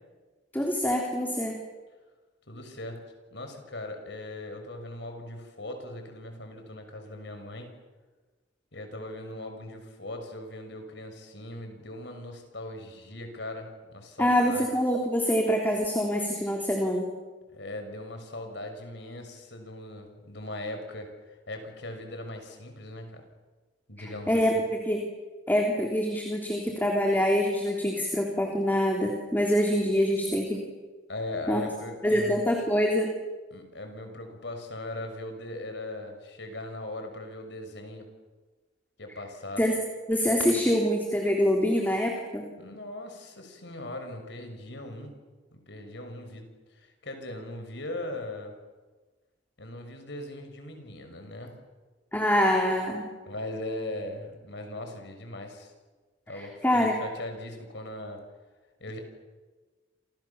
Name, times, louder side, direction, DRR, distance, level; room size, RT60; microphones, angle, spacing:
voice 1, 0.5-1.6 14.2-17.1 24.3-24.5 24.8-25.1 25.5-30.6 31.5-31.6 32.0-33.1 39.6-39.7 40.1-42.5 52.1-53.0 56.4-56.9, equal, 10° left, 1 dB, 3.4 m, -25 dB
voice 2, 2.5-3.0 3.3-7.7 8.7-14.7 17.5-23.2 23.9-24.5 31.1-32.4 33.5-38.1 39.0-39.6 42.6-45.1 45.5-48.6 49.6-51.6 53.3-55.7 56.3-58.2 58.8-59.0, left 1 dB, 65° left, 5 dB, 6.4 m, -39 dB
29.5 x 28.0 x 7.2 m, 1.3 s
head